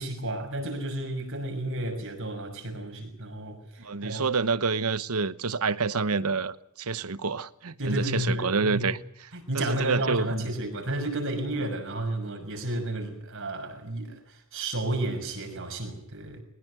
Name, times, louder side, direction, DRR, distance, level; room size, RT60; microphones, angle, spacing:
voice 1, 0.0-4.3 7.8-8.9 9.3-16.4, right 1 dB, 65° right, 6.3 m, -32 dB
voice 2, 3.8-9.0 9.5-10.5, right 4 dB, 80° right, 1.0 m, -28 dB
22.0 x 20.0 x 9.4 m
head